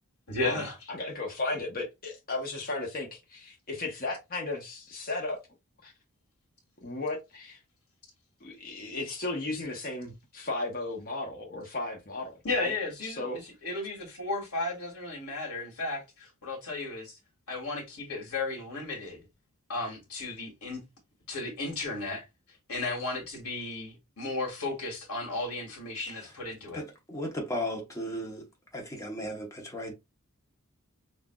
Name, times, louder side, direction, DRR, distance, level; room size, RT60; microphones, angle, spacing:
voice 1, 0.3-0.8 12.4-17.2 17.5-19.3 19.7-20.8 21.3-22.2 22.7-26.8, left 3 dB, 85° left, 1.9 m, -34 dB
voice 2, 0.9-5.4 5.8-5.9 6.8-7.6 8.4-12.7 13.0-13.4, left 2 dB, 40° left, 1.0 m, -35 dB
voice 3, 26.7-28.4 28.7-29.9, equal, 15° left, 0.9 m, -35 dB
6.0 x 2.5 x 2.3 m
head